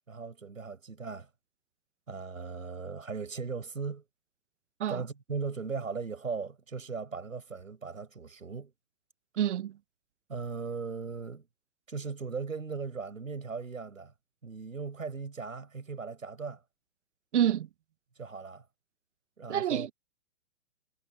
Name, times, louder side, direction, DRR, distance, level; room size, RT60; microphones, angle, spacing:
voice 1, 0.1-1.3 2.1-4.0 4.9-8.7 10.3-11.5 11.9-14.1 14.4-16.6 18.2-18.7 19.4-19.9, right 5 dB, 85° right, 6.8 m, -38 dB
voice 2, 9.4-9.8 17.3-17.7 19.5-19.9, right 10 dB, 60° right, 1.1 m, -27 dB
hypercardioid pair, 125°, 39 cm